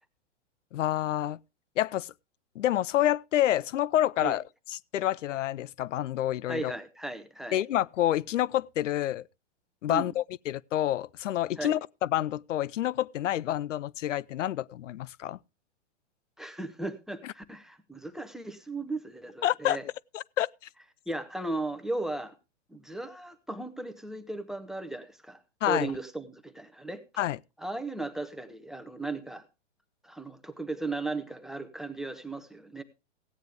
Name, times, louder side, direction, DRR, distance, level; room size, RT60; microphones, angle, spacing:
voice 1, 0.7-1.4 1.8-2.1 2.6-4.4 4.9-6.7 7.5-9.2 9.8-11.8 12.1-15.4 17.2-17.3 19.4-19.8 20.1-20.5 25.6-25.9 27.2-27.4, left 12 dB, 80° left, 0.5 m, -28 dB
voice 2, 6.5-7.6 9.9-10.1 11.6-11.8 16.4-19.8 21.1-22.3 22.7-27.0 27.6-29.5 30.0-32.8, right 2 dB, ahead, 0.8 m, -36 dB
16.0 x 9.3 x 3.4 m
hypercardioid pair, 130°, 36 cm